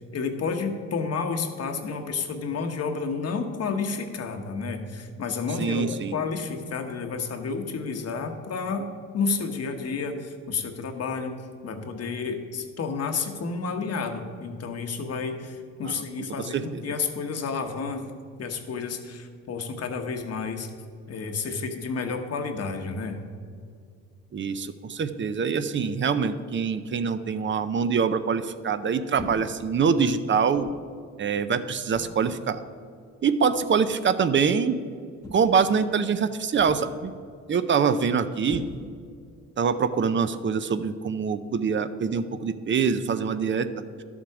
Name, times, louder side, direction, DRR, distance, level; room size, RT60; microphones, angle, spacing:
voice 1, 0.1-8.9 9.1-18.1 18.4-20.7 21.1-23.2, left 4 dB, 55° left, 5 dB, 1.2 m, -30 dB
voice 2, 5.6-6.1 15.8-16.3 16.5-16.8 24.3-30.7 31.2-32.6 33.2-34.8 35.3-37.1 37.5-38.6 39.6-43.7, right 6 dB, 40° right, 12 dB, 0.6 m, -24 dB
sound 1, 29.2-29.7 30.5-30.9 31.9-32.4 33.5-33.7 35.2-35.7 36.6-37.1 38.5-39.2, left 1 dB, 10° left, 1.2 m, -41 dB
11.5 x 7.3 x 4.8 m, 2.2 s
cardioid pair, 90°, 30 cm